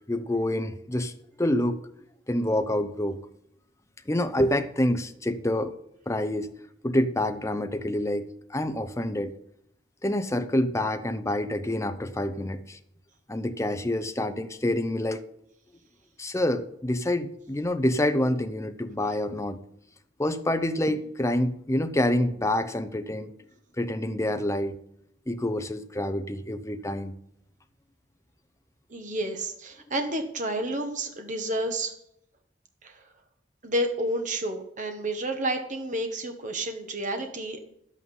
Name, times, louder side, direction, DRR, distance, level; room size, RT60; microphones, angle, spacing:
voice 1, 0.1-1.1 1.4-1.8 2.3-3.2 4.1-5.7 6.1-6.5 6.8-9.3 10.0-12.8 13.3-15.2 16.2-19.6 20.2-23.3 23.8-24.8 25.3-27.2, left 1 dB, 15° left, 9 dB, 0.7 m, -27 dB
voice 2, 28.9-31.9 32.8-33.0 33.6-37.6, right 1 dB, 45° right, 5 dB, 1.3 m, -30 dB
11.0 x 8.5 x 5.4 m, 0.75 s
head